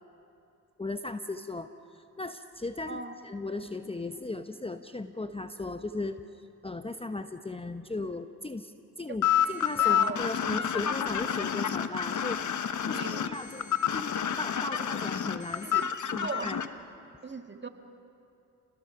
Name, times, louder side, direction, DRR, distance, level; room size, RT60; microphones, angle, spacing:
voice 1, 0.8-12.4 12.9-15.8 16.1-16.6, left 2 dB, 15° left, 8 dB, 0.9 m, -37 dB
sound 1, 9.2-16.7, left 9 dB, 50° left, 1.2 m, -28 dB
voice 2, 9.8-10.2 12.9-13.3 15.6-15.9 16.2-16.5 17.2-17.7, right 3 dB, 30° right, 5 dB, 1.9 m, -37 dB
29.0 x 20.0 x 5.8 m, 2.7 s
supercardioid pair, 50°, 38 cm